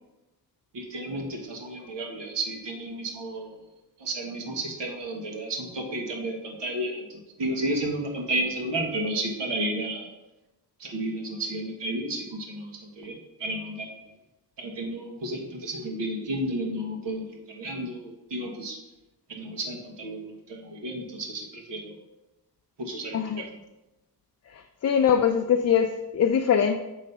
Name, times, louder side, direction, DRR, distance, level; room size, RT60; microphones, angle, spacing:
voice 1, 0.7-3.6 4.0-10.1 10.8-13.9 14.6-18.8 19.3-22.0 22.8-23.4, right 1 dB, 90° right, 1 dB, 1.5 m, -32 dB
voice 2, 23.1-23.4 24.5-26.8, left 8 dB, 40° left, 5 dB, 0.4 m, -23 dB
7.5 x 3.2 x 5.3 m, 1.0 s
wide cardioid pair, 105°, 41 cm